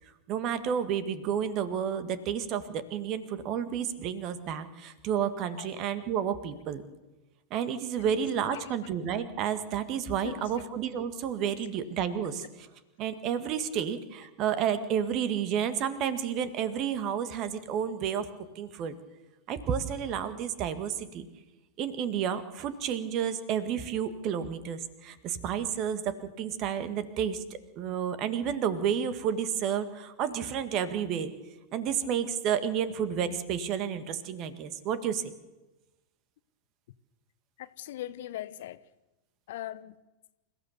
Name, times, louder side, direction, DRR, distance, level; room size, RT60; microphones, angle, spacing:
voice 1, 0.3-6.8 7.5-12.7 13.0-18.3 18.6-18.9 19.5-21.3 21.8-31.3 31.7-35.3, right 8 dB, 40° right, 1.8 m, -31 dB
voice 2, 10.2-10.6 37.6-38.8 39.5-39.9, left 13 dB, 55° left, 0.8 m, -39 dB
28.0 x 15.5 x 6.8 m
figure-of-eight pair, 90°, 0 cm